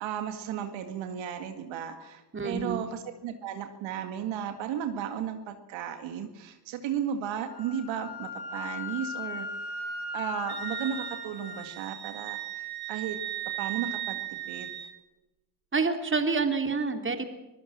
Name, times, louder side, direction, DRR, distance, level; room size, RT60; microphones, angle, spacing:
voice 1, 0.0-9.5 10.1-13.2 13.6-14.9, right 8 dB, 75° right, 7 dB, 2.1 m, -35 dB
voice 2, 2.3-2.8 15.7-17.3, right 4 dB, 25° right, 7 dB, 3.2 m, -28 dB
Wind instrument woodwind instrument, 7.5-11.6, left 3 dB, 65° left, 7.6 m, -38 dB
Wind instrument woodwind instrument 2, 10.5-15.0, right 14 dB, 50° right, 2.7 m, -37 dB
24.0 x 16.0 x 7.4 m, 1.0 s
supercardioid pair, 70°, 46 cm